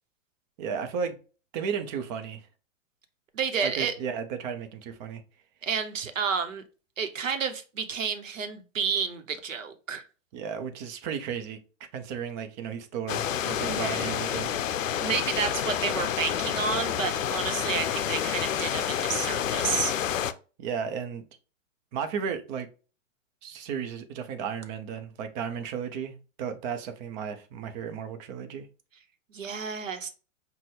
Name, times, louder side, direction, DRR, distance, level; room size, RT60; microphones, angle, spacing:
voice 1, 0.6-1.2 1.5-2.4 3.6-5.2 10.3-11.6 11.9-14.5 20.6-21.2 21.9-22.7 23.4-28.7, right 7 dB, 35° right, 7 dB, 0.7 m, -34 dB
voice 2, 3.3-3.9 5.6-6.6 7.0-10.0 13.5-14.1 15.0-20.0 29.3-30.1, right 6 dB, 80° right, 7 dB, 0.9 m, -30 dB
sound 1, 13.1-20.3, left 9 dB, 80° left, 0.5 m, -29 dB
5.7 x 2.2 x 3.2 m, 0.35 s
hypercardioid pair, 110°, 38 cm